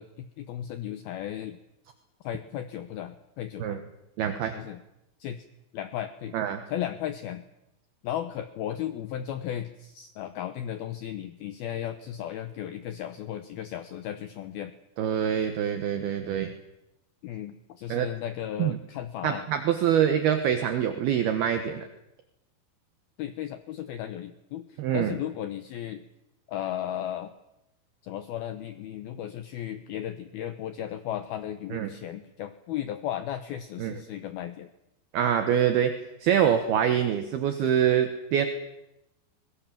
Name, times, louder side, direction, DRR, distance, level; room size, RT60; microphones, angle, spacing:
voice 1, 0.0-1.6 2.2-3.8 4.5-4.8 5.2-5.4 5.7-6.4 6.7-7.4 8.0-14.7 17.2-19.4 23.2-26.0 26.5-27.3 28.0-34.7, left 11 dB, 80° left, 10 dB, 2.2 m, -35 dB
voice 2, 4.2-4.5 6.3-6.6 15.0-16.5 17.9-18.1 18.6-18.8 19.2-21.9 24.8-25.1 31.7-31.9 33.8-33.9 35.1-35.9 36.2-38.5, right 9 dB, 65° right, 7 dB, 2.8 m, -25 dB
23.0 x 22.0 x 7.5 m, 0.89 s
omnidirectional pair, 5.6 m